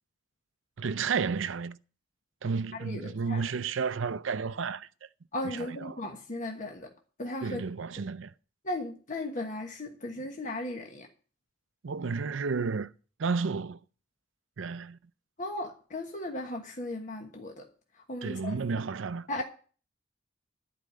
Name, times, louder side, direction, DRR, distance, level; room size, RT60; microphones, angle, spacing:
voice 1, 0.8-1.8 2.4-4.9 5.4-6.0 7.4-8.3 11.8-12.9 13.2-13.8 14.6-15.0 18.2-19.4, right 5 dB, 75° right, 0.5 m, -32 dB
voice 2, 2.7-3.4 5.3-6.9 7.2-7.6 8.6-11.1 15.4-17.7 18.1-18.6 19.3-19.4, left 1 dB, 40° left, 1.2 m, -36 dB
11.5 x 5.0 x 8.5 m
head